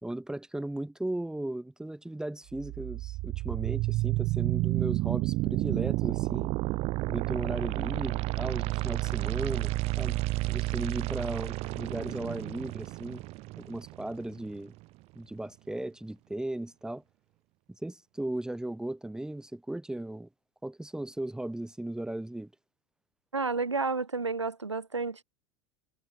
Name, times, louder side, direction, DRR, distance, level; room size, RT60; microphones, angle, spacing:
voice 1, 0.0-6.5 7.1-10.2 10.5-13.2 13.6-14.7 15.1-17.0 17.8-20.3 20.6-22.5, right 1 dB, 5° right, 3.3 m, -36 dB
sound 1, 2.5-14.5, right 20 dB, 45° right, 7.6 m, -31 dB
voice 2, 23.3-25.2, right 4 dB, 85° right, 7.3 m, -31 dB
figure-of-eight pair, 80°, 15 cm